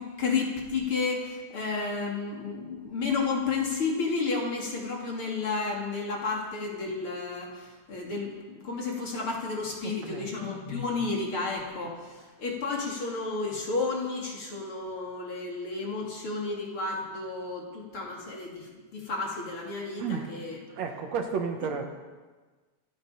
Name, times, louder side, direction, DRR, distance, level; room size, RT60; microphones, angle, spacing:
voice 1, 0.0-20.6, left 4 dB, 45° left, -1 dB, 3.2 m, -32 dB
voice 2, 9.8-10.3 20.0-20.3 20.7-21.8, right 6 dB, 65° right, 4 dB, 2.3 m, -32 dB
25.5 x 8.8 x 5.6 m, 1.3 s
omnidirectional pair, 3.5 m